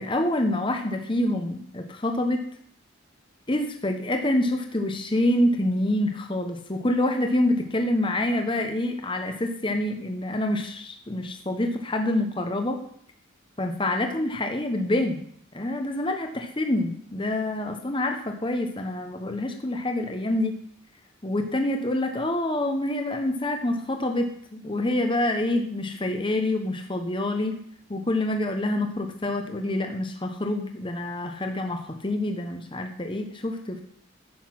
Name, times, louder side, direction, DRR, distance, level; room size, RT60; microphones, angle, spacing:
voice 1, 0.0-2.4 3.5-12.8 13.6-15.2 15.5-20.6 21.2-27.6 27.9-33.8, left 1 dB, 25° left, 5 dB, 1.0 m, -26 dB
10.5 x 8.2 x 5.9 m, 0.64 s
head